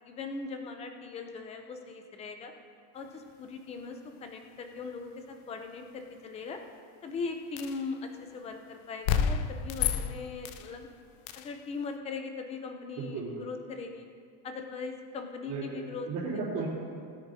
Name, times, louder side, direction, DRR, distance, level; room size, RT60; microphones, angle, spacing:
voice 1, 0.0-2.5 2.9-6.6 7.0-10.9 11.4-14.1 14.4-16.1, left 4 dB, 15° left, 5 dB, 0.3 m, -40 dB
sound 1, 7.6-7.8 9.0-10.7 11.3-11.5, left 7 dB, 65° left, 0.7 m, -30 dB
voice 2, 13.0-13.3 15.5-16.7, right 4 dB, 35° right, -11 dB, 3.3 m, -35 dB
19.5 x 9.5 x 2.7 m, 2.3 s
cardioid pair, 175°, 47 cm